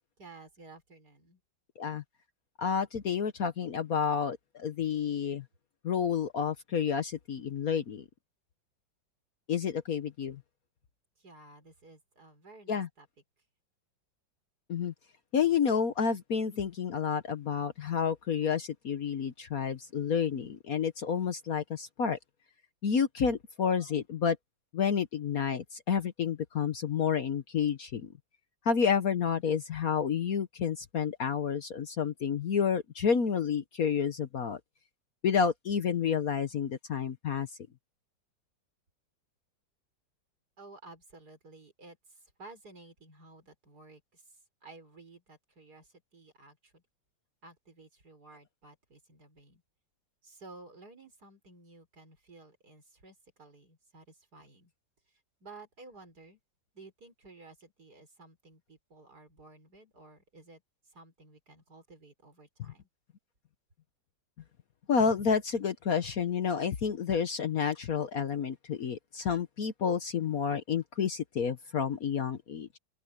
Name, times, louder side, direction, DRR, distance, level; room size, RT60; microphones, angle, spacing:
voice 1, 0.2-1.4 11.2-13.1 40.6-44.2 44.6-46.8 47.4-49.6 50.2-54.7 55.4-56.4 56.7-60.6 60.9-62.9, right 3 dB, 55° right, 5.8 m, -54 dB
voice 2, 2.6-5.4 5.8-8.0 9.5-10.4 12.7-12.9 14.7-14.9 15.3-22.2 22.8-24.4 24.7-28.1 28.6-34.6 35.2-37.5 64.9-72.8, left 7 dB, 55° left, 1.3 m, -30 dB
open air
omnidirectional pair, 2.0 m